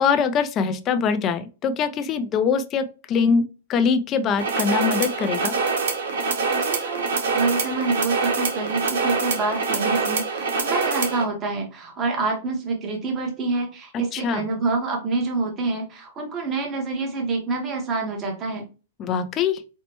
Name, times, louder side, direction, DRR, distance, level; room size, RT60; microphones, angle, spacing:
voice 1, 0.0-5.5 14.1-14.4 19.0-19.6, left 6 dB, 20° left, 10 dB, 0.3 m, -23 dB
sound 1, 4.4-11.2, right 4 dB, 85° right, 1.0 m, -25 dB
voice 2, 6.5-18.7, right 3 dB, 20° right, 1 dB, 0.8 m, -27 dB
4.3 x 2.1 x 2.9 m, 0.33 s
supercardioid pair, 175°, 0 cm